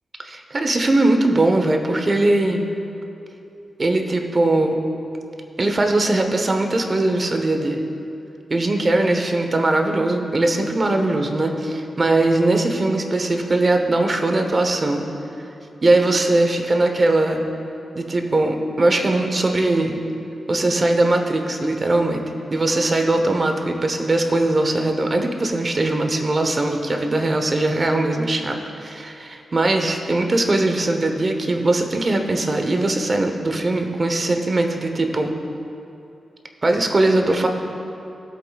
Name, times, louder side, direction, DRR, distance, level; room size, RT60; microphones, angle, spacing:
voice 1, 0.2-2.7 3.8-4.7 5.6-7.8 8.5-15.0 15.8-17.5 17.9-20.0 20.5-22.2 22.5-35.3 36.6-37.5, right 2 dB, 35° right, 4 dB, 0.9 m, -20 dB
17.5 x 8.2 x 2.4 m, 2.8 s
wide cardioid pair, 100°, 0 cm